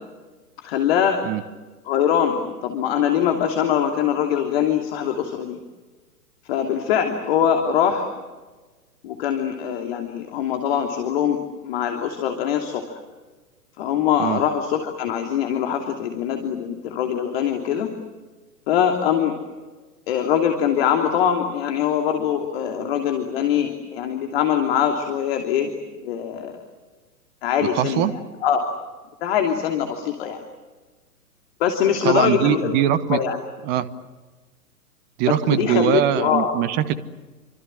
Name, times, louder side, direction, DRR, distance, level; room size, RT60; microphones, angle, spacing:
voice 1, 0.6-1.2 1.8-5.6 6.4-8.1 9.0-13.0 13.8-17.9 18.7-19.3 20.1-25.7 26.0-26.6 27.4-28.7 29.2-30.4 31.6-32.7 33.1-33.4 35.3-36.5, left 9 dB, 40° left, 4 dB, 3.1 m, -23 dB
voice 2, 27.6-28.1 32.0-33.2 33.6-33.9 35.2-36.9, right 11 dB, 20° right, 14 dB, 1.2 m, -21 dB
29.5 x 25.5 x 7.7 m, 1.3 s
figure-of-eight pair, 115°, 47 cm